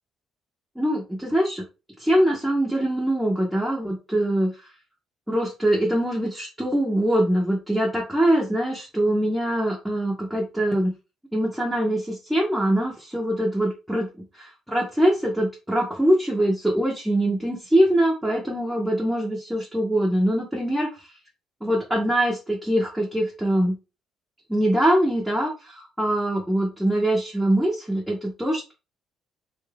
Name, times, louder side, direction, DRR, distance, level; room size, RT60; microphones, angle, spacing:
voice 1, 0.8-1.6 2.0-4.5 5.3-10.9 11.3-14.1 14.4-20.9 21.6-23.7 24.5-28.7, right 1 dB, ahead, -3 dB, 0.6 m, -23 dB
3.7 x 2.4 x 3.1 m, 0.29 s
cardioid pair, 175°, 0 cm